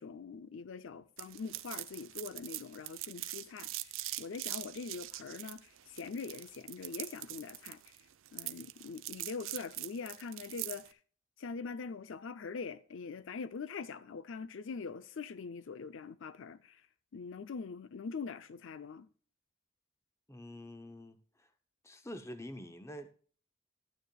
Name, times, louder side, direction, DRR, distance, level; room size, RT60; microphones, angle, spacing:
voice 1, 0.0-3.7 4.2-7.8 8.3-11.0 11.4-16.8 17.1-19.1, left 5 dB, 65° left, 0.5 m, -43 dB
sound 1, 1.2-10.9, right 16 dB, 75° right, 0.6 m, -42 dB
voice 2, 20.3-21.5 21.8-23.1, equal, 15° left, 0.7 m, -47 dB
13.0 x 9.4 x 2.3 m
head